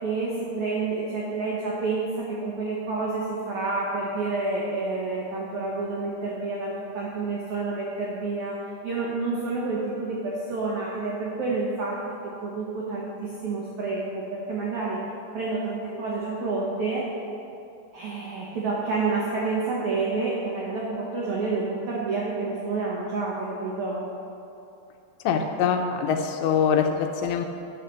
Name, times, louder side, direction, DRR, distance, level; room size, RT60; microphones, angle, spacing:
voice 1, 0.0-15.0 15.3-17.1 17.9-24.1, right 3 dB, 90° right, -4 dB, 1.6 m, -29 dB
voice 2, 25.2-27.5, left 7 dB, 90° left, 5 dB, 3.0 m, -24 dB
11.5 x 4.1 x 6.9 m, 2.7 s
omnidirectional pair, 5.0 m